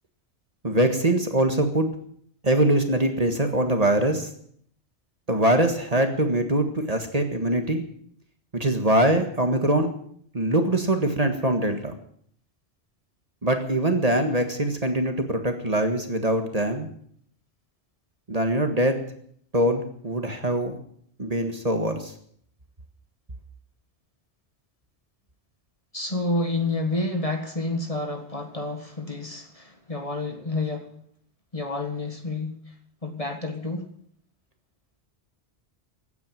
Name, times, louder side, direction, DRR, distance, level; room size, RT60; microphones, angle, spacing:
voice 1, 0.6-1.9 2.4-4.3 5.3-7.8 8.5-9.9 10.3-11.9 13.4-16.9 18.3-19.0 19.5-20.8 21.2-22.1, right 1 dB, 35° right, 1.8 m, -23 dB
voice 2, 25.9-31.0 31.5-32.7 33.0-33.9, left 2 dB, 30° left, 1.8 m, -29 dB
16.0 x 9.4 x 9.2 m
omnidirectional pair, 1.1 m